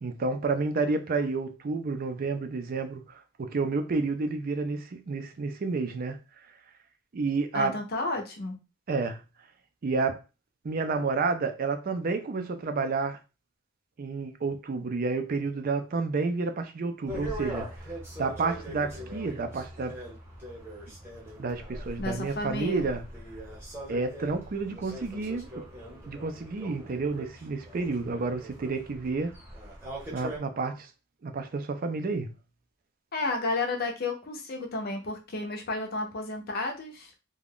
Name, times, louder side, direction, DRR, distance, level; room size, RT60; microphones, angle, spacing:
voice 1, 0.0-3.0 3.4-6.2 7.1-7.8 8.9-9.2 9.8-10.2 10.6-13.2 14.0-17.7 18.2-19.9 21.4-23.0 23.9-25.7 26.1-29.3 30.1-30.9 31.2-32.3, right 4 dB, 40° right, 0.4 m, -30 dB
voice 2, 7.5-8.6 22.0-22.9 33.1-37.1, left 2 dB, 45° left, 0.6 m, -32 dB
sound 1, 17.1-30.4, right 1 dB, 10° right, 0.9 m, -41 dB
2.4 x 2.2 x 3.4 m
head